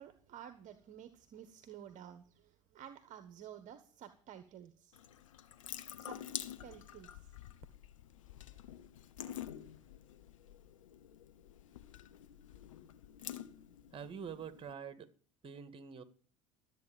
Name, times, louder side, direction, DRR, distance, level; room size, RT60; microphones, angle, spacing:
voice 1, 0.0-5.0 5.5-5.6 6.0-6.2 6.6-7.1, right 10 dB, 50° right, 1.3 m, -52 dB
Water tap faucet / Sink (filling or washing) / Drip, 4.9-14.7, left 10 dB, 75° left, 1.0 m, -48 dB
voice 2, 13.9-15.1 15.4-16.0, right 7 dB, 30° right, 2.1 m, -46 dB
13.0 x 8.5 x 9.1 m
hypercardioid pair, 70°, 17 cm